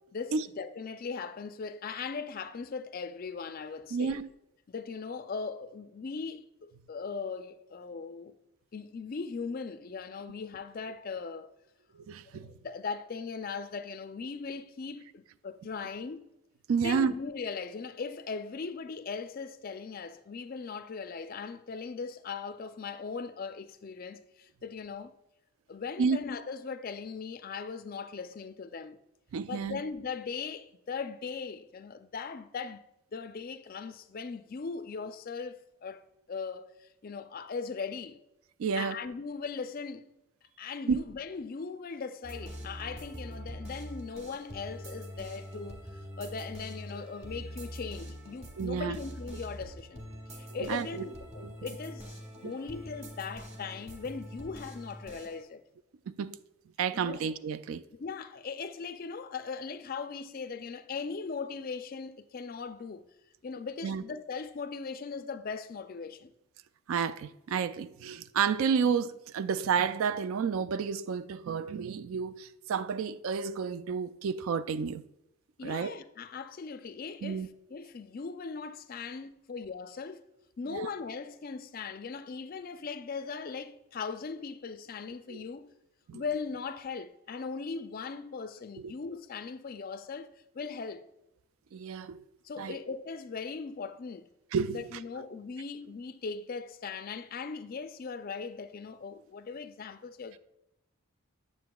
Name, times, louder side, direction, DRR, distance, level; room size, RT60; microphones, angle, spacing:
voice 1, 0.1-4.2 4.7-8.3 8.7-11.5 12.3-16.3 16.8-25.1 25.7-29.0 29.5-32.8 33.1-36.0 36.3-38.2 38.7-40.0 40.6-45.8 46.2-50.0 50.3-52.2 52.4-55.6 56.9-57.2 57.9-63.0 63.4-66.3 75.6-77.4 77.7-80.2 80.6-85.7 86.1-90.3 90.5-91.0 92.4-94.3 94.7-100.4, left 5 dB, 40° left, 0.4 m, -39 dB
voice 2, 3.9-4.3 12.1-12.5 16.7-17.1 26.0-26.2 29.3-29.8 38.6-39.0 40.9-41.0 48.6-49.0 50.6-51.1 51.4-51.5 52.4-52.5 56.1-56.4 56.8-57.8 63.8-64.0 66.9-75.0 75.6-75.9 77.2-77.5 80.7-80.9 85.3-85.4 86.1-86.2 88.8-88.9 91.7-92.2 92.6-92.8 94.5-95.0, right 6 dB, 65° right, 0.3 m, -31 dB
sound 1, 42.2-55.4, equal, 30° right, 1.1 m, -44 dB
7.6 x 7.1 x 2.3 m
head